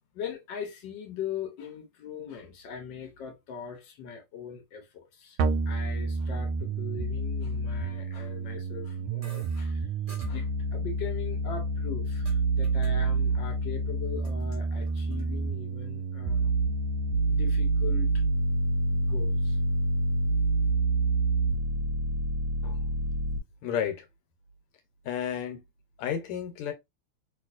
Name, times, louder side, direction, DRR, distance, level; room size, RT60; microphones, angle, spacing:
voice 1, 0.1-5.4 5.7-9.9 10.3-16.5 17.3-18.2 18.9-19.6, left 7 dB, 65° left, 1.3 m, -40 dB
sound 1, 5.4-23.4, right 2 dB, 75° right, 1.3 m, -28 dB
sound 2, 9.2-9.6 10.1-10.3 11.3-12.4 12.6-12.9 13.2-13.6 14.0-15.2, equal, 45° right, 0.4 m, -51 dB
voice 2, 23.6-24.1 25.0-25.6 26.0-26.7, left 9 dB, 90° left, 1.8 m, -31 dB
3.1 x 3.0 x 2.4 m
omnidirectional pair, 2.4 m